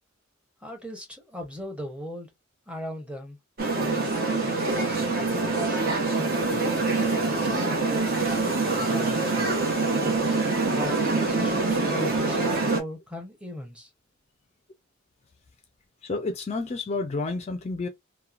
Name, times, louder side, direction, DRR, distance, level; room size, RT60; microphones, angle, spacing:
voice 1, 0.6-2.3 2.7-3.4 3.8-5.0 5.3-6.7 7.4-9.5 10.0-10.3 10.7-13.9, equal, 5° right, 0.8 m, -39 dB
sound 1, 3.6-12.8, right 3 dB, 50° right, 0.9 m, -25 dB
voice 2, 16.0-17.9, left 3 dB, 35° left, 0.4 m, -30 dB
2.9 x 2.1 x 2.4 m
head